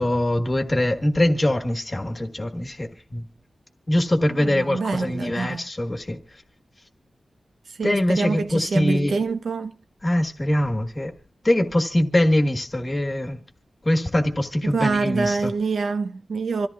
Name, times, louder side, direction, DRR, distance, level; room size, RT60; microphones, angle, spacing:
voice 1, 0.0-3.2 3.9-6.2 7.8-9.1 10.0-11.1 11.4-13.4 13.8-15.5, left 1 dB, 20° left, 1.4 m, -23 dB
voice 2, 4.3-5.6 7.7-9.8 14.6-16.7, right 4 dB, 70° right, 1.0 m, -26 dB
26.5 x 14.0 x 2.4 m
wide cardioid pair, 165°, 0 cm